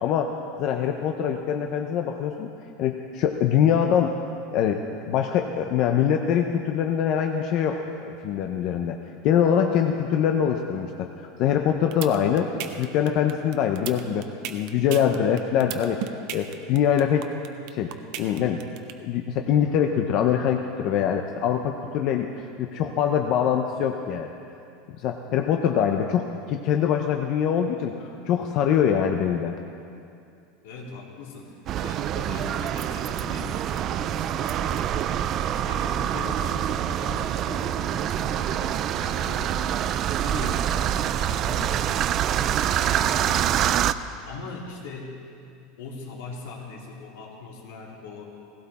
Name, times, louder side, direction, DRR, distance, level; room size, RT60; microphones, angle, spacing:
voice 1, 0.0-2.5 2.8-4.1 4.5-4.8 5.1-9.0 9.2-11.1 11.4-12.5 12.8-16.0 16.3-17.2 17.7-17.9 18.2-18.6 19.0-22.3 22.6-24.3 24.9-29.5, left 8 dB, 40° left, 4 dB, 0.7 m, -23 dB
sound 1, 11.7-18.9, right 12 dB, 50° right, 0.8 m, -34 dB
voice 2, 30.6-39.6 40.2-43.5 44.3-45.2 45.8-48.3, left 3 dB, 75° left, -2 dB, 3.2 m, -40 dB
sound 2, 31.7-43.9, right 10 dB, 30° right, 0.3 m, -26 dB
17.5 x 16.5 x 4.2 m, 2.5 s
supercardioid pair, 175°, 0 cm